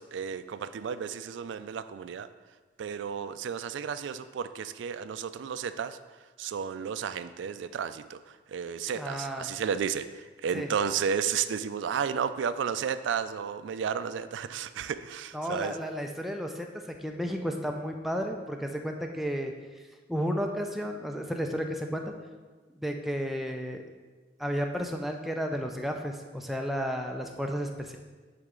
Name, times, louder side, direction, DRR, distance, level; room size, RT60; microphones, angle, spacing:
voice 1, 0.0-2.3 2.8-6.0 6.4-8.2 8.5-15.7, right 7 dB, 75° right, 12 dB, 0.3 m, -32 dB
voice 2, 8.9-9.5 10.5-10.7 15.3-22.1 22.7-23.8 24.4-28.0, equal, ahead, 3 dB, 0.4 m, -33 dB
9.7 x 4.0 x 3.7 m, 1.4 s
head